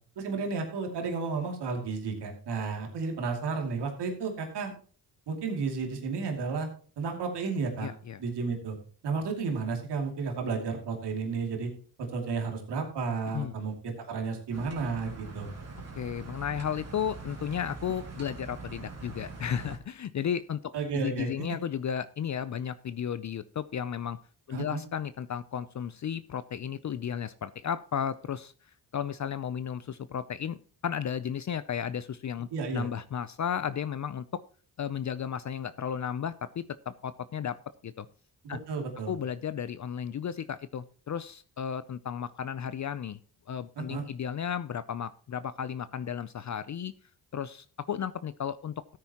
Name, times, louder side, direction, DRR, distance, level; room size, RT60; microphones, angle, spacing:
voice 1, 0.2-4.7 5.3-6.7 7.0-7.9 8.2-8.8 9.0-11.7 12.0-15.5 20.7-21.3 24.5-24.8 32.5-32.9 38.4-39.1 43.8-44.0, right 4 dB, 85° right, 3 dB, 2.7 m, -32 dB
voice 2, 7.8-8.2 13.3-13.5 15.9-24.2 24.5-28.5 28.9-34.4 34.8-37.6 37.8-38.1 38.5-38.6 39.1-43.2 43.5-46.9 47.3-49.0, left 8 dB, 45° left, 14 dB, 0.6 m, -34 dB
sound 1, 14.5-19.8, right 3 dB, 40° right, 2.5 m, -43 dB
14.5 x 9.4 x 2.9 m, 0.42 s
cardioid pair, 70°, 40 cm